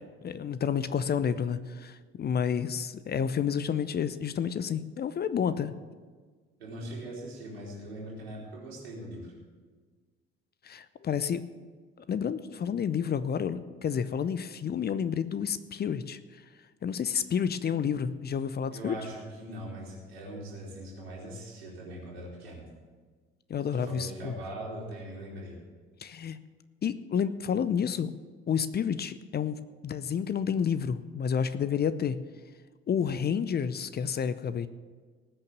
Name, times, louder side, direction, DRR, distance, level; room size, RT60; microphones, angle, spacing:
voice 1, 0.0-5.7 10.6-11.4 12.1-16.2 16.8-18.9 23.5-24.3 26.0-26.4 26.8-28.1 28.5-32.2 32.9-34.7, left 7 dB, 30° left, 14 dB, 0.7 m, -30 dB
voice 2, 6.6-9.3 18.7-22.6 23.7-25.6, right 1 dB, 80° right, -4 dB, 3.5 m, -41 dB
18.5 x 6.7 x 7.3 m, 1.5 s
figure-of-eight pair, 50°, 30 cm